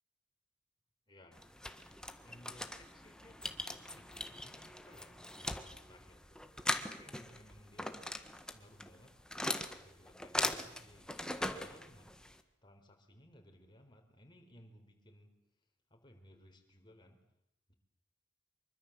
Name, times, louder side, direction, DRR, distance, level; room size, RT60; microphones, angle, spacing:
voice 1, 1.1-1.4 2.2-6.4 7.0-8.2 8.5-12.2 12.6-15.3 15.9-17.2, left 1 dB, 25° left, 3 dB, 4.4 m, -60 dB
sound 1, 1.3-12.4, left 1 dB, 5° left, 1.5 m, -41 dB
25.0 x 23.5 x 7.7 m, 0.78 s
head